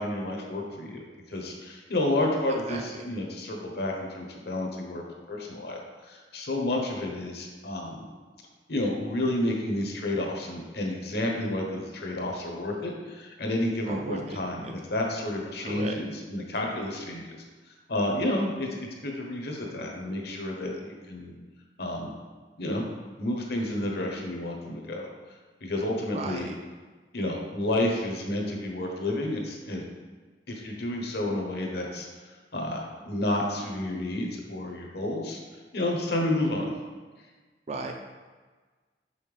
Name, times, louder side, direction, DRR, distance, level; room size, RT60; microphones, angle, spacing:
voice 1, 0.0-5.0 5.3-5.8 6.0-8.1 8.7-17.4 17.9-18.7 19.0-21.3 21.8-22.1 22.6-22.8 23.2-25.1 25.6-26.5 27.1-29.8 30.5-32.1 32.5-32.8 33.0-35.4 35.7-36.7, left 1 dB, 60° left, 0 dB, 1.0 m, -30 dB
voice 2, 2.7-3.0 13.9-14.7 15.6-15.9 26.1-26.5 37.7-37.9, right 3 dB, 40° right, 3 dB, 0.4 m, -36 dB
5.6 x 5.3 x 3.4 m, 1.4 s
head